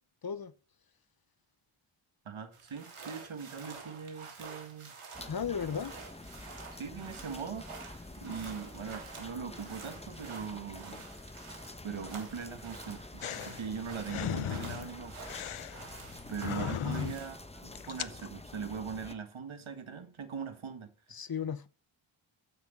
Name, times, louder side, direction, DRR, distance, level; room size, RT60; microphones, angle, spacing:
voice 1, 2.3-5.0 5.7-5.8 6.7-7.7 8.2-11.1 11.8-15.2 16.3-21.2, right 6 dB, 70° right, 1.8 m, -41 dB
sound 1, 2.5-17.4, right 4 dB, 90° right, 3.2 m, -49 dB
sound 2, 5.1-19.1, left 2 dB, 15° left, 0.9 m, -48 dB
voice 2, 5.3-5.9 16.6-17.1 21.1-21.7, left 7 dB, 45° left, 0.9 m, -35 dB
sound 3, 13.2-17.4 17.7-18.3, left 10 dB, 80° left, 0.7 m, -38 dB
14.5 x 6.0 x 5.5 m
wide cardioid pair, 105°, 49 cm